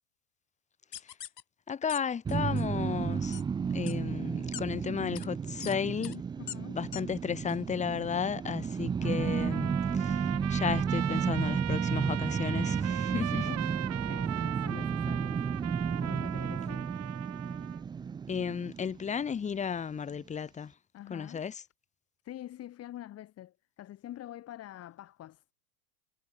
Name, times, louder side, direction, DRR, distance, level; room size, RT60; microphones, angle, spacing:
sound 1, 0.9-1.4 1.9-2.0 2.3-2.6 3.3-3.4 3.9-4.0 4.5-4.6 5.1-5.3 5.6-5.7 6.0-6.2 6.5-6.6 6.9-7.0 7.5-7.6, left 11 dB, 85° left, 1.0 m, -42 dB
voice 1, 1.7-3.4 3.7-6.2 6.7-13.5 18.3-20.7 21.1-21.6, left 7 dB, 15° left, 1.1 m, -34 dB
sound 2, 2.2-19.4, right 6 dB, 10° right, 0.5 m, -32 dB
voice 2, 6.4-6.8 13.2-16.9 20.9-21.4 22.2-25.5, left 13 dB, 30° left, 2.0 m, -46 dB
Trumpet, 9.0-17.8, right 14 dB, 30° right, 1.9 m, -39 dB
hypercardioid pair, 105°, 48 cm